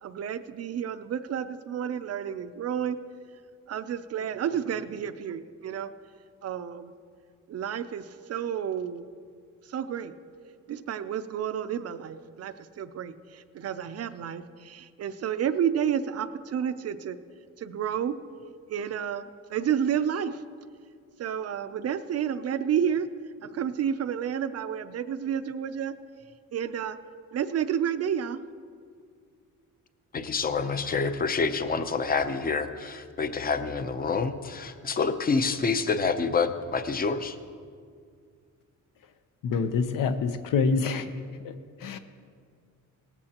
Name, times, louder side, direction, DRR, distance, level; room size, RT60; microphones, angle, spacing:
voice 1, 0.0-3.0 3.7-5.9 6.4-6.9 7.5-9.0 9.7-10.1 10.7-17.2 17.6-18.1 18.7-19.2 19.5-20.4 21.2-23.1 23.4-25.9 26.5-27.0 27.3-28.4, right 8 dB, 50° right, 11 dB, 0.5 m, -30 dB
voice 2, 30.1-37.4, left 4 dB, 30° left, 10 dB, 0.6 m, -27 dB
voice 3, 39.4-41.1 41.4-42.0, left 5 dB, 75° left, 9 dB, 0.9 m, -27 dB
18.5 x 14.0 x 2.9 m, 2.1 s
cardioid pair, 165°, 33 cm